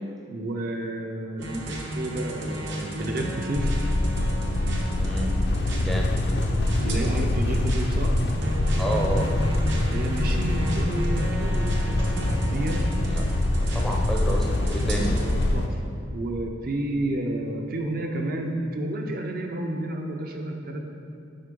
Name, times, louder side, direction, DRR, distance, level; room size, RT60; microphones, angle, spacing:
voice 1, 0.3-3.8 6.8-8.1 9.9-12.8 14.9-15.8 16.1-20.9, right 1 dB, 50° right, 2 dB, 0.6 m, -31 dB
sound 1, 1.4-15.5, right 1 dB, 70° right, 0.9 m, -34 dB
sound 2, 3.5-15.7, left 1 dB, 55° left, 0.5 m, -24 dB
voice 2, 5.0-5.3 5.8-6.1 8.8-9.3 13.1-13.2 13.6-15.2, right 1 dB, ahead, -1 dB, 0.5 m, -30 dB
sound 3, 12.0-14.2, equal, 90° right, 1.2 m, -45 dB
8.1 x 3.7 x 5.2 m, 2.4 s
head